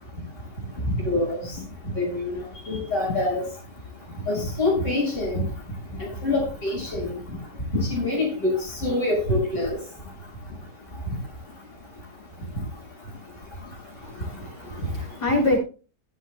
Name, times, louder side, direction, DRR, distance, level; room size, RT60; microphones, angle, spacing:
voice 1, 0.9-1.5 2.0-2.3 2.7-3.4 4.3-5.4 6.0-7.2 7.7-9.8, left 2 dB, 45° left, 6.1 m, -25 dB
voice 2, 14.0-15.6, left 2 dB, 80° left, 7.8 m, -26 dB
18.0 x 10.0 x 2.2 m
omnidirectional pair, 1.8 m